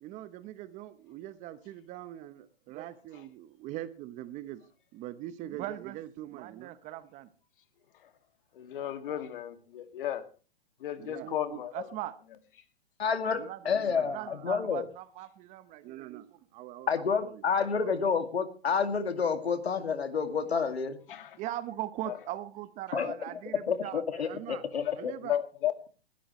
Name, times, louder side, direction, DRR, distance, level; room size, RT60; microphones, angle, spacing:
voice 1, 0.0-4.6 4.9-7.3 11.0-12.1 13.3-18.0 21.4-24.6 25.0-25.4, right 14 dB, 25° right, 14 dB, 0.8 m, -41 dB
voice 2, 8.6-10.2 10.8-11.9 21.1-21.4 22.1-22.2 24.8-25.0 25.2-25.9, left 11 dB, 55° left, 9 dB, 2.2 m, -34 dB
voice 3, 13.0-14.8 16.9-21.0 22.9-23.2 23.7-25.1, left 6 dB, 90° left, 9 dB, 2.3 m, -29 dB
20.0 x 12.5 x 3.1 m, 0.35 s
hypercardioid pair, 135°, 31 cm